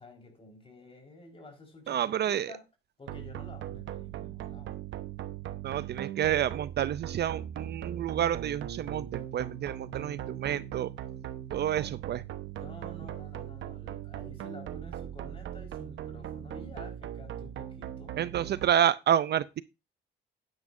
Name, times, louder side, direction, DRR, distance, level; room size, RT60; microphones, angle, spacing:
voice 1, 0.0-2.6 3.0-4.7 12.5-18.1, left 2 dB, 30° left, 4.6 m, -50 dB
voice 2, 1.9-2.5 5.6-10.9 11.5-12.2 18.2-19.6, right 10 dB, 55° right, 0.5 m, -29 dB
sound 1, 3.1-18.7, right 11 dB, 75° right, 1.1 m, -39 dB
12.0 x 9.7 x 2.6 m
cardioid pair, 90°, 20 cm